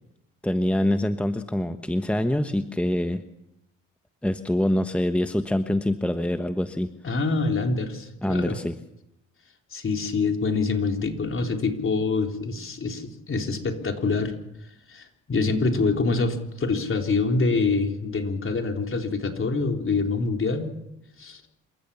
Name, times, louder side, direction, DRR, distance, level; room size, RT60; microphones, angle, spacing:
voice 1, 0.4-3.2 4.2-6.9 8.2-8.8, left 1 dB, 5° left, 8 dB, 1.3 m, -25 dB
voice 2, 7.0-8.6 9.7-14.3 14.9-20.7 21.2-21.4, left 3 dB, 40° left, 3 dB, 3.9 m, -25 dB
27.5 x 15.0 x 7.1 m, 0.87 s
supercardioid pair, 60°, 32 cm